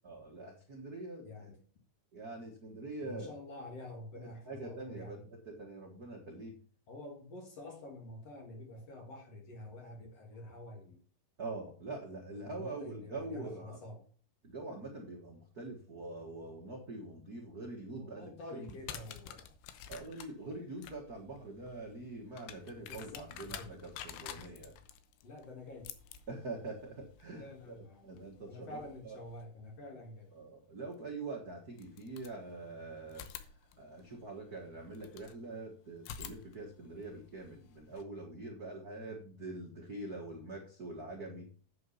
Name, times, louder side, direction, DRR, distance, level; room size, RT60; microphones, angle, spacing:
voice 1, 0.0-1.5 2.1-3.3 4.1-5.2 5.4-6.5 11.4-13.8 14.4-18.8 19.9-24.7 26.3-27.7 28.0-29.2 30.3-33.3 33.8-41.5, right 2 dB, 80° right, -1 dB, 0.8 m, -44 dB
voice 2, 1.2-1.6 3.0-5.2 6.9-11.0 12.3-14.1 17.9-19.5 22.9-23.8 24.3-24.5 25.2-25.9 27.3-30.3, left 2 dB, 50° left, 3 dB, 2.1 m, -48 dB
sound 1, 18.6-29.4 30.9-31.0 31.7-32.7 33.1-35.4 36.0-38.0, left 9 dB, 85° left, 2.9 m, -50 dB
9.1 x 6.6 x 5.6 m, 0.42 s
omnidirectional pair, 4.6 m